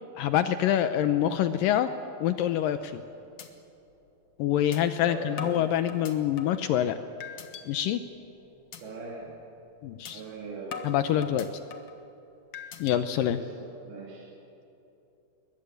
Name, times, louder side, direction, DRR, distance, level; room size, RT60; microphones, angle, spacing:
voice 1, 0.2-1.9 2.2-3.0 4.4-7.0 7.7-8.0 9.8-10.2 10.8-11.5 12.8-13.4, left 11 dB, 85° left, 10 dB, 2.0 m, -26 dB
sound 1, 2.9-3.0 3.4-3.5 3.9-4.0 4.7-4.8 5.4-6.6 7.2-7.6 8.1-8.3 8.7-8.8 9.2-9.4 10.0-10.1 10.7-12.0 12.5-13.0, left 7 dB, 65° left, 1.5 m, -41 dB
voice 2, 5.1-6.0 8.8-9.4 10.1-10.8 13.3-14.2, right 4 dB, 90° right, -6 dB, 5.6 m, -40 dB
22.0 x 21.5 x 9.3 m, 2.9 s
omnidirectional pair, 4.8 m